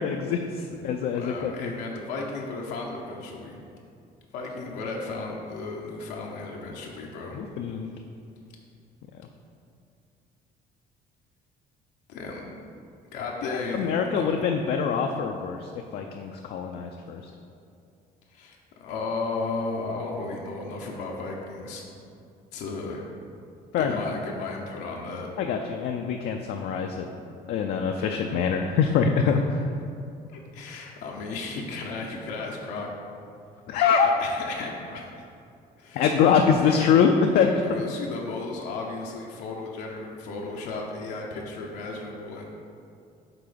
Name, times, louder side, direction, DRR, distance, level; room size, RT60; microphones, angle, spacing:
voice 1, 0.0-1.7 7.3-7.9 13.7-17.2 23.7-24.0 25.4-27.1 27.5-29.6 33.7-34.1 36.0-37.8, left 6 dB, 65° left, 3 dB, 0.4 m, -24 dB
voice 2, 1.1-3.6 4.3-7.4 12.1-12.5 13.1-14.3 18.3-21.8 22.5-23.0 23.8-25.3 30.3-32.9 34.0-35.3 35.8-36.2 36.6-36.9 37.6-42.4, left 3 dB, 90° left, -2 dB, 0.8 m, -34 dB
6.0 x 3.8 x 5.0 m, 2.4 s
cardioid pair, 110°, 17 cm